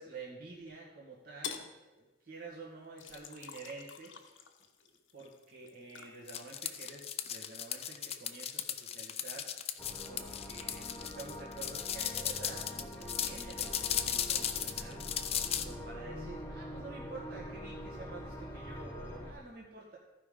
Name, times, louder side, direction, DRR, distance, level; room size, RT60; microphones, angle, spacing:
voice 1, 0.0-4.1 4.8-9.6 10.0-15.3 15.6-20.0, right 3 dB, 50° right, -5 dB, 1.7 m, -49 dB
sound 1, 1.4-1.8 3.0-7.2 7.6-9.0, left 7 dB, 70° left, 0.9 m, -48 dB
sound 2, 6.3-15.6, left 9 dB, 30° left, 0.5 m, -36 dB
sound 3, 9.8-19.3, equal, 15° left, 1.2 m, -45 dB
14.5 x 5.0 x 5.4 m, 1.1 s
head